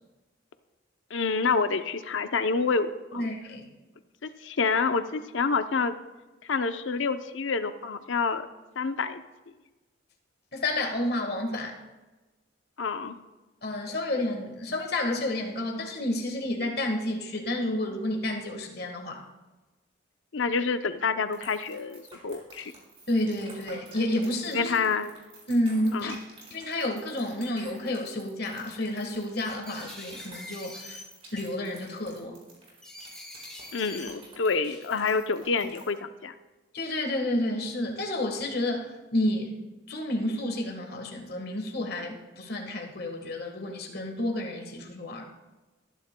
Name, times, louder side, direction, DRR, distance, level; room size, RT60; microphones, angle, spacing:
voice 1, 1.1-3.3 4.2-5.9 6.4-8.5 8.8-9.2 12.8-13.2 20.3-22.7 24.5-25.1 25.9-26.2 33.7-36.3, left 4 dB, 70° left, 10 dB, 0.6 m, -28 dB
voice 2, 3.1-3.7 10.5-11.8 13.6-19.2 23.1-24.7 25.5-26.1 26.5-31.0 31.3-32.3 36.7-39.5 39.9-45.3, left 1 dB, 50° left, 2 dB, 1.5 m, -30 dB
sound 1, 21.3-36.0, right 3 dB, 30° right, 4.1 m, -50 dB
sound 2, 25.9-26.0 26.6-27.2 28.0-28.2 28.5-28.7 29.4-31.0 31.4-31.9 32.8-34.1 34.7-35.1, left 1 dB, 5° left, 1.9 m, -45 dB
20.5 x 10.5 x 2.2 m, 1.1 s
head